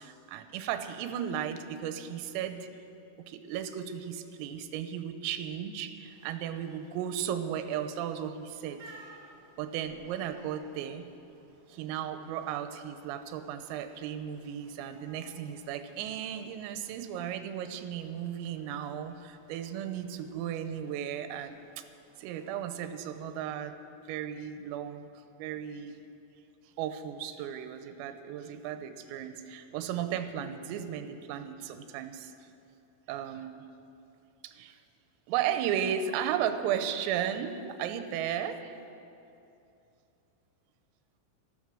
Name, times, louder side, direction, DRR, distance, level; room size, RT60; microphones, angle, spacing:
voice 1, 0.0-2.7 3.2-8.8 9.6-11.1 11.7-21.8 22.2-23.8 24.1-25.0 25.4-25.9 26.8-32.3 33.1-33.6 34.4-34.8 35.3-38.7, right 9 dB, 85° right, 9 dB, 3.4 m, -35 dB
Cat meows and rain, 6.0-23.6, right 3 dB, 65° right, 4.7 m, -60 dB
14.0 x 13.0 x 6.1 m, 2.7 s
omnidirectional pair, 6.0 m